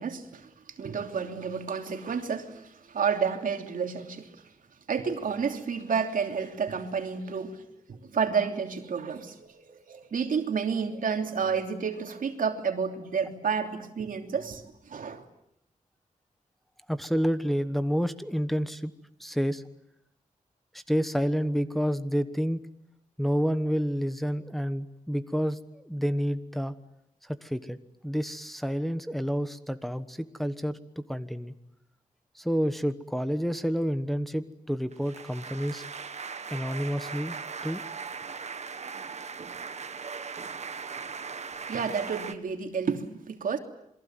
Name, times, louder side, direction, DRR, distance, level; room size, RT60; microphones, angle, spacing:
voice 1, 0.0-4.5 4.9-7.6 7.9-15.2 41.7-43.6, right 6 dB, 75° right, 3.1 m, -30 dB
voice 2, 16.9-18.9 19.2-19.6 20.7-22.6 23.2-26.7 27.2-27.8 28.0-30.8 31.1-31.5 32.3-35.8 36.5-37.4 37.6-37.8, equal, ahead, 1.2 m, -29 dB
sound 1, 34.9-42.3, right 5 dB, 55° right, 1.6 m, -39 dB
28.0 x 22.5 x 9.1 m
wide cardioid pair, 135°, 14 cm